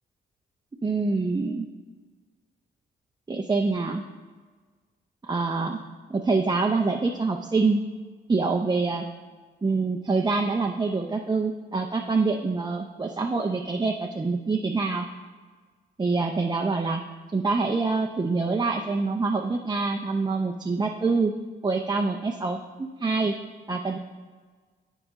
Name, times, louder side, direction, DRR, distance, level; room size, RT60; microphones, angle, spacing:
voice 1, 0.8-1.7 3.3-4.0 5.2-5.8 6.1-7.8 8.3-9.0 9.6-15.1 16.0-17.0 17.3-21.3 21.6-23.4 23.7-24.0, right 3 dB, 20° right, 2 dB, 0.6 m, -25 dB
7.7 x 4.9 x 4.0 m, 1.5 s
supercardioid pair, 55°, 21 cm